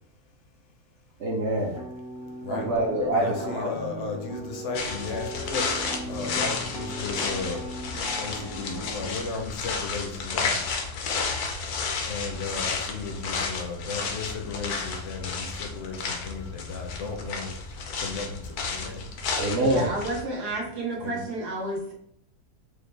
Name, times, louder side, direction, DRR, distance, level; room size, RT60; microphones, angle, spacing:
voice 1, 1.2-1.8 2.5-3.7 19.4-19.9, right 1 dB, 60° right, -1 dB, 0.7 m, -25 dB
sound 1, 1.6-9.1, right 1 dB, 5° right, 0.6 m, -38 dB
voice 2, 3.1-5.7 6.1-7.6 8.2-10.6 12.0-17.5 18.0-19.0 21.0-21.2, left 4 dB, 60° left, 3 dB, 0.8 m, -35 dB
sound 2, 4.7-20.2, left 4 dB, 80° left, 1.2 m, -32 dB
voice 3, 19.6-21.9, right 1 dB, 90° right, -2 dB, 1.7 m, -31 dB
5.0 x 2.1 x 3.2 m, 0.70 s
omnidirectional pair, 1.6 m